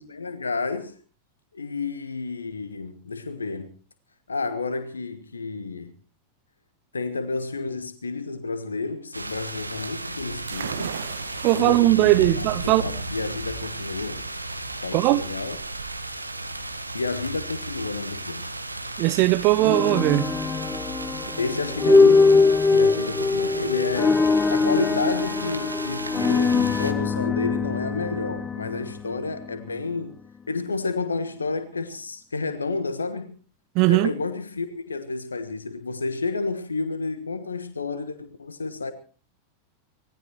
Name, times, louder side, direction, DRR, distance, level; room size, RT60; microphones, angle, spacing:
voice 1, 0.1-1.0 1.5-3.7 4.3-5.9 6.9-10.9 11.5-14.3 14.8-15.6 16.9-18.5 21.4-30.2 30.5-33.4 33.9-38.9, left 3 dB, 75° left, 1.2 m, -30 dB
sound 1, 9.1-26.9, right 2 dB, 85° right, 1.4 m, -34 dB
sound 2, 10.5-18.0, right 8 dB, 65° right, 1.6 m, -40 dB
voice 2, 11.4-12.8 14.9-15.2 19.0-20.3 33.7-34.1, right 18 dB, 40° right, 0.9 m, -19 dB
sound 3, 19.6-29.7, left 4 dB, 15° left, 0.7 m, -22 dB
25.0 x 18.5 x 3.0 m
figure-of-eight pair, 90°, 0 cm